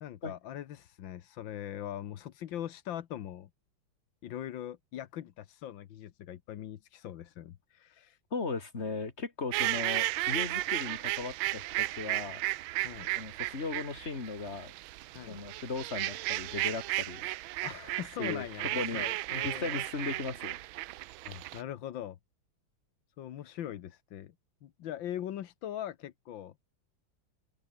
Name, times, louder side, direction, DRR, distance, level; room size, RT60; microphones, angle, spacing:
voice 1, 0.0-3.5 4.2-8.2 12.8-13.1 15.2-15.4 17.6-19.8 20.2-20.3 21.3-22.2 23.2-24.3 24.6-26.5, left 11 dB, 75° left, 1.7 m, -41 dB
voice 2, 8.3-12.4 13.1-14.7 15.3-17.3 18.2-19.0 19.3-20.6, left 4 dB, 35° left, 2.6 m, -37 dB
sound 1, 9.5-21.6, right 17 dB, 90° right, 1.4 m, -34 dB
open air
omnidirectional pair, 2.1 m